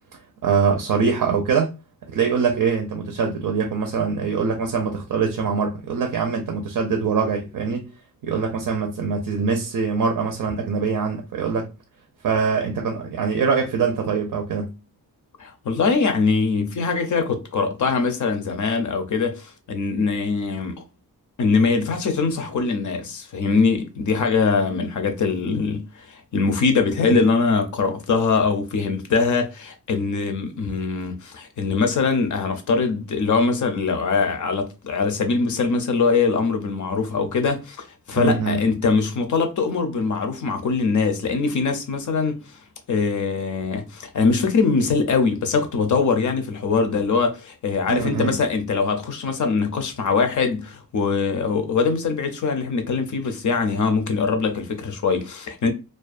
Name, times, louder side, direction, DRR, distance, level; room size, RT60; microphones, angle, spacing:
voice 1, 0.4-1.7 2.1-7.8 8.2-11.7 12.2-14.7 38.1-38.6 47.9-48.4, right 5 dB, 65° right, 0.5 m, -23 dB
voice 2, 15.4-20.8 21.4-42.6 42.9-55.7, left 4 dB, 55° left, 0.5 m, -22 dB
2.4 x 2.2 x 2.4 m
wide cardioid pair, 175°, 37 cm